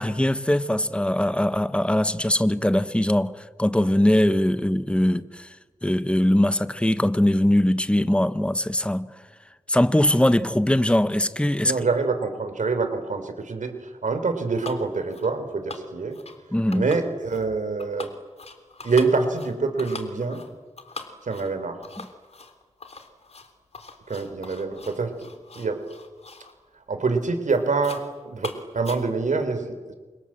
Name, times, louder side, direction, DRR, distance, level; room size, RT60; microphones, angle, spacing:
voice 1, 0.0-3.3 3.6-5.5 5.8-9.1 9.7-11.7 16.5-16.9 22.0-22.1, left 1 dB, 10° left, 1.2 m, -21 dB
voice 2, 11.6-13.7 14.0-16.2 16.7-18.1 18.8-20.4 21.3-21.8 24.1-25.1 25.6-25.8 26.9-29.9, right 4 dB, 85° right, 4.1 m, -25 dB
sound 1, 14.6-14.8 15.1-15.4 15.7-16.4 16.7-17.5 17.8-26.6 26.9-27.2 27.5-28.1 28.4-29.4, left 3 dB, 55° left, 3.3 m, -42 dB
29.5 x 26.0 x 7.7 m
wide cardioid pair, 90°, 13 cm